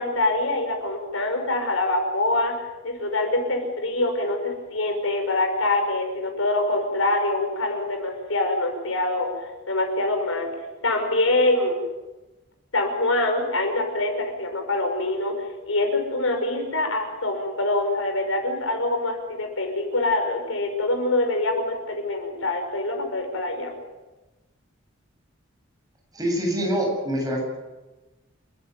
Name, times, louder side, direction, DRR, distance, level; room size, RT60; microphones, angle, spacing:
voice 1, 0.0-2.5 2.8-9.3 9.7-10.5 10.8-11.8 12.7-15.3 15.6-23.7, left 2 dB, 80° left, 4 dB, 6.0 m, -24 dB
voice 2, 26.1-27.4, equal, 20° right, 0 dB, 7.9 m, -25 dB
29.5 x 15.5 x 9.4 m, 1.1 s
head